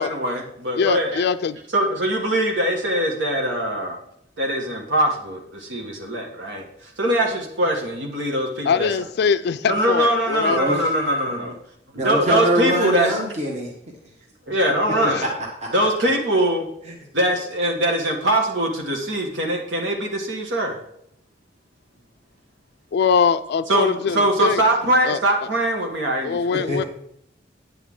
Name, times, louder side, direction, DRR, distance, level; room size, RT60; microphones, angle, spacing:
voice 1, 0.0-1.2 1.7-4.0 4.4-6.6 7.0-8.9 9.6-11.5 12.0-13.1 14.5-15.2 15.7-16.6 17.2-20.7 23.7-26.8, right 1 dB, 85° right, 1 dB, 1.5 m, -22 dB
voice 2, 0.8-1.6 8.7-10.6 15.1-15.2 22.9-24.6 25.0-25.2 26.2-26.8, left 6 dB, 60° left, 12 dB, 0.3 m, -22 dB
voice 3, 10.5-10.9 11.3-11.5 11.9-13.7 15.0-15.3 15.6-15.9 26.5-26.8, equal, 40° right, -1 dB, 1.4 m, -24 dB
9.0 x 8.2 x 3.7 m, 0.72 s
head